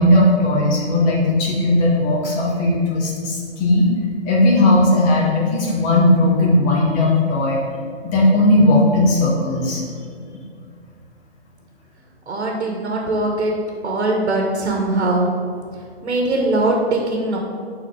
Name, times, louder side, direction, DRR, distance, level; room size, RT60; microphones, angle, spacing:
voice 1, 0.0-3.9 4.2-7.6 8.0-9.8 10.3-10.4, left 1 dB, 20° left, -4 dB, 1.7 m, -17 dB
voice 2, 12.3-13.5 13.8-15.3 15.7-17.4, right 2 dB, 80° right, 0 dB, 1.5 m, -21 dB
11.5 x 4.2 x 3.9 m, 2.3 s
hypercardioid pair, 150°, 33 cm